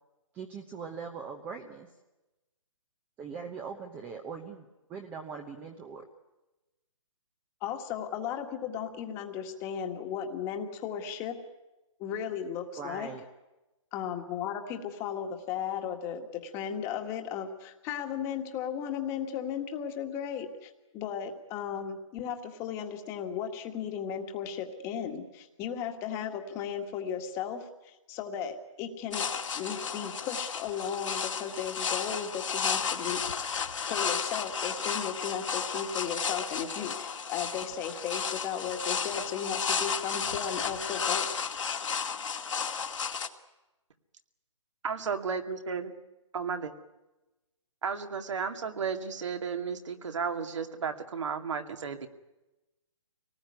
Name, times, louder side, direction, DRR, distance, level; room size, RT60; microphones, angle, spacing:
voice 1, 0.3-1.9 3.2-6.1 12.8-13.2, right 5 dB, 10° right, 5 dB, 1.0 m, -41 dB
voice 2, 7.6-11.4 12.0-13.1 13.9-29.3 29.5-33.2 33.5-41.3, left 8 dB, 15° left, 5 dB, 1.7 m, -35 dB
sound 1, 29.1-43.3, left 6 dB, 70° left, 2.3 m, -33 dB
voice 3, 44.8-45.9 46.3-46.7 47.8-52.1, right 6 dB, 65° right, 6 dB, 2.4 m, -33 dB
25.0 x 19.0 x 9.6 m, 1.0 s
hypercardioid pair, 165°, 17 cm